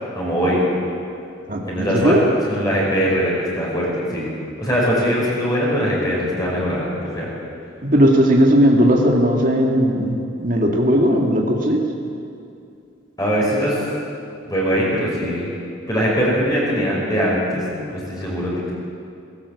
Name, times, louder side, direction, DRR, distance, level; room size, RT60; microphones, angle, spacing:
voice 1, 0.1-0.6 1.7-2.1 2.4-4.3 4.6-7.3 13.2-13.9 14.4-15.5 15.9-18.8, equal, 20° left, -5 dB, 5.4 m, -21 dB
voice 2, 1.5-2.2 7.8-11.8, equal, 45° right, 0 dB, 1.9 m, -17 dB
18.0 x 17.5 x 8.3 m, 2.5 s
head